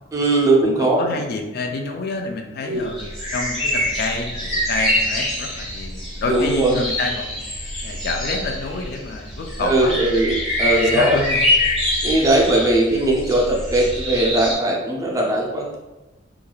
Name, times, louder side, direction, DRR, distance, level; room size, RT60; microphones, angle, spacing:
voice 1, 0.1-1.1 2.6-2.9 6.3-6.8 9.6-11.2 12.0-15.8, right 1 dB, 15° right, -2 dB, 0.4 m, -19 dB
voice 2, 0.6-7.4 7.8-10.0 10.6-11.4 11.7-11.8, left 3 dB, 55° left, 4 dB, 0.3 m, -28 dB
sound 1, 2.9-14.5, left 1 dB, ahead, 1.1 m, -25 dB
3.1 x 2.3 x 2.2 m, 1.1 s
head